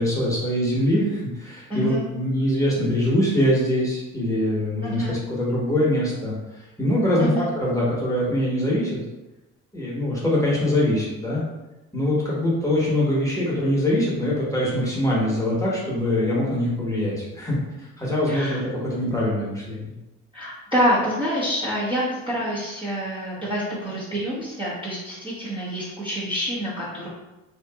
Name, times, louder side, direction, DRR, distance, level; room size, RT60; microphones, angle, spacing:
voice 1, 0.0-9.0 9.7-11.4 11.9-19.9, left 1 dB, 10° left, -6 dB, 1.0 m, -23 dB
voice 2, 1.7-2.0 4.8-5.2 7.2-7.5 18.3-18.6 20.3-27.1, equal, 15° right, -8 dB, 0.8 m, -27 dB
2.8 x 2.4 x 2.3 m, 1.0 s
supercardioid pair, 80°, 33 cm